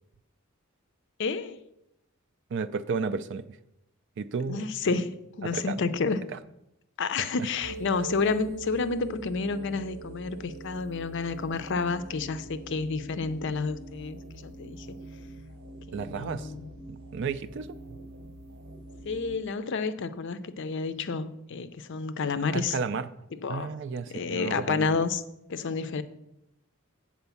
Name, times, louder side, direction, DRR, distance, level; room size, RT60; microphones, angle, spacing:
voice 1, 1.2-1.6 4.5-6.2 7.0-14.9 15.9-16.7 19.0-22.8 23.4-23.7 24.1-25.2 25.5-26.0, left 4 dB, 55° left, 12 dB, 0.5 m, -30 dB
voice 2, 2.5-3.5 4.2-4.7 4.9-5.0 5.4-5.8 7.2-7.3 15.9-16.5 16.9-18.0 22.5-23.1 23.5-25.0, right 5 dB, 55° right, 14 dB, 0.4 m, -33 dB
sound 1, 7.6-19.4, right 3 dB, 75° right, 0.9 m, -43 dB
8.1 x 4.3 x 6.9 m, 0.86 s
head